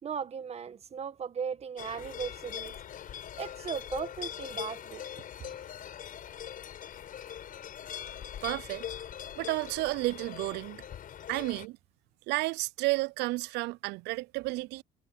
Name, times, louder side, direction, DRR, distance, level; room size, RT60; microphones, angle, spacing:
voice 1, 0.0-2.7 3.4-5.0, right 7 dB, 40° right, 1.5 m, -37 dB
sound 1, 1.8-11.7, left 9 dB, 55° left, 6.7 m, -42 dB
voice 2, 8.4-8.9 9.4-10.8 11.3-11.8 12.3-14.8, right 21 dB, 85° right, 0.4 m, -32 dB
cardioid pair, 110°, 17 cm